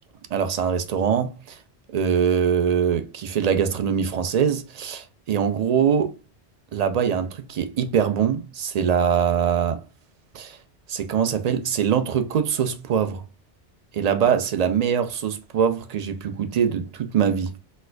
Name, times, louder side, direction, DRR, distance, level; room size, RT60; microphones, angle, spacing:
voice 1, 0.3-1.6 1.9-6.2 6.7-9.8 10.3-10.6 10.9-13.2 13.9-17.6, right 7 dB, 60° right, 0.4 m, -23 dB
4.2 x 2.4 x 2.2 m
omnidirectional pair, 1.2 m